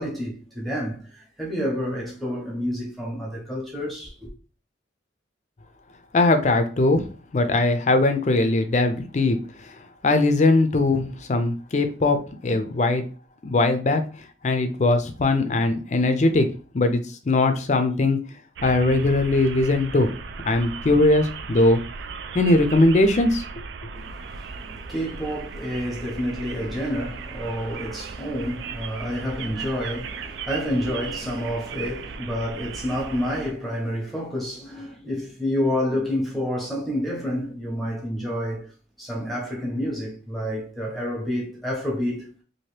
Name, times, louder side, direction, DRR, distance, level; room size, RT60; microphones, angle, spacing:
voice 1, 0.0-4.3 23.9-38.7 39.0-42.4, equal, ahead, 0.8 m, -29 dB
voice 2, 6.1-7.0 7.3-9.8 10.0-12.2 12.4-13.1 13.4-14.0 14.4-16.5 16.7-18.2 18.6-20.1 20.5-21.8 22.3-23.4, left 2 dB, 40° left, 0.4 m, -20 dB
sound 1, 18.6-33.5, right 5 dB, 75° right, 0.3 m, -37 dB
2.8 x 2.5 x 3.2 m
head